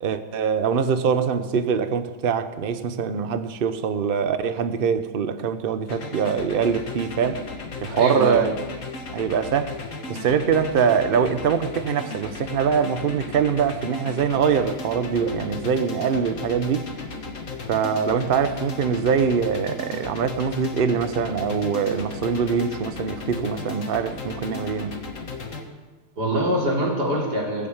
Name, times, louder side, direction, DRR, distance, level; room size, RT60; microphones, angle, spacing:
voice 1, 0.0-7.4 7.8-8.6 9.1-9.7 10.1-16.9 17.7-25.0, right 6 dB, 45° right, 0.8 m, -23 dB
sound 1, 5.9-25.6, left 3 dB, 55° left, 1.9 m, -35 dB
voice 2, 7.9-8.4 26.2-27.7, right 1 dB, 90° right, 4.0 m, -23 dB
19.0 x 7.4 x 8.1 m
omnidirectional pair, 1.7 m